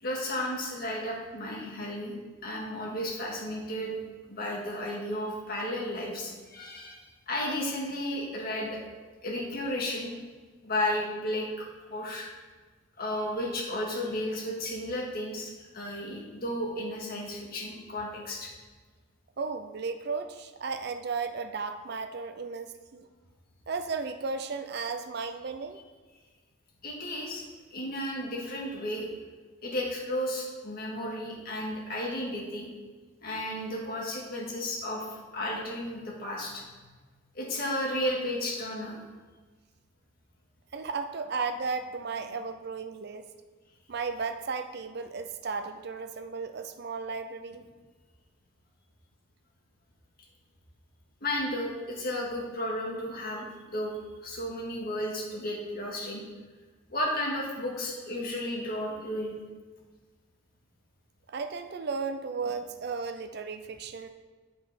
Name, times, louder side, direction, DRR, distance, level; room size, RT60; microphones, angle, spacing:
voice 1, 0.0-2.2 2.4-4.0 4.3-8.8 9.2-10.1 10.6-12.3 13.0-18.5 26.8-27.4 27.7-29.1 29.6-32.7 33.2-35.1 35.3-36.6 37.3-39.0 51.2-56.2 56.9-59.3, left 1 dB, 50° left, -3 dB, 2.0 m, -33 dB
voice 2, 19.4-23.1 23.7-25.8 40.7-43.3 43.9-47.6 61.3-64.1, right 4 dB, 55° right, 8 dB, 0.5 m, -34 dB
9.4 x 5.3 x 5.1 m, 1.4 s
head